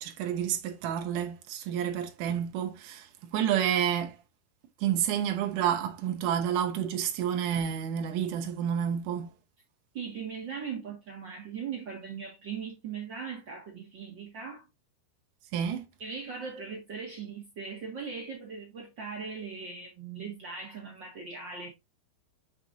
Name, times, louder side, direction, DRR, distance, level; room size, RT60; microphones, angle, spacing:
voice 1, 0.0-4.2 4.8-9.3 15.5-15.9, right 9 dB, 70° right, 2.1 m, -29 dB
voice 2, 9.9-14.7 16.0-21.7, right 5 dB, 45° right, 1.5 m, -39 dB
7.3 x 5.2 x 2.6 m
omnidirectional pair, 4.7 m